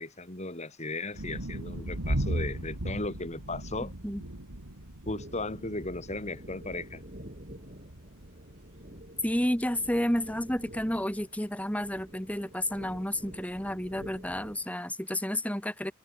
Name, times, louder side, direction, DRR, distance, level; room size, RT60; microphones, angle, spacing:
voice 1, 0.0-3.9 5.1-7.0, left 2 dB, 30° left, 2.5 m, -36 dB
sound 1, 1.1-10.8, right 1 dB, 85° right, 3.4 m, -38 dB
sound 2, 5.0-14.7, right 1 dB, 40° right, 7.6 m, -49 dB
voice 2, 9.2-15.9, left 1 dB, 5° left, 3.4 m, -31 dB
head